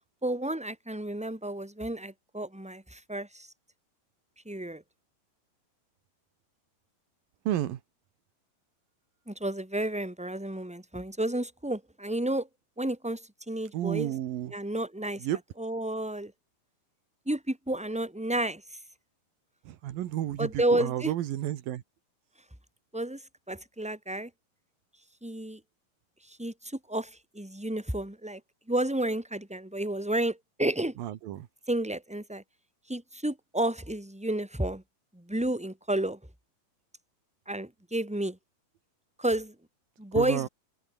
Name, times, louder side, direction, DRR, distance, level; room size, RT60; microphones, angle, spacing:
voice 1, 0.2-3.5 4.4-4.8 9.3-12.5 12.8-14.1 14.5-15.3 15.6-16.3 17.2-18.6 20.4-21.1 22.9-23.2 23.5-24.3 25.2-25.6 26.3-28.4 28.7-31.0 31.7-32.4 32.9-34.8 35.1-36.2 37.5-38.4 39.2-39.5 40.0-40.5, right 1 dB, ahead, 4.9 m, -31 dB
voice 2, 7.5-7.8 13.7-14.5 15.2-15.4 19.6-21.8 31.0-31.5 40.2-40.5, right 12 dB, 80° right, 3.1 m, -31 dB
open air
omnidirectional pair, 4.1 m